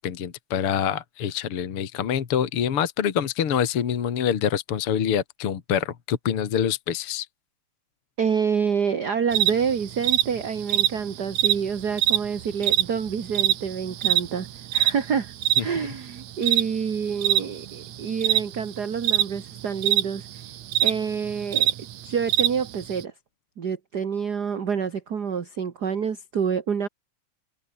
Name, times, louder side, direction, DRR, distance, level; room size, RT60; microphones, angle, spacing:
voice 1, 0.0-7.3 15.6-15.9, left 8 dB, 50° left, 2.5 m, -26 dB
voice 2, 8.2-14.5 14.7-15.3 15.6-20.3 20.8-21.7 22.0-23.1 23.6-26.9, right 6 dB, 40° right, 1.9 m, -27 dB
sound 1, 9.3-23.0, right 12 dB, 70° right, 2.4 m, -24 dB
omnidirectional pair, 3.4 m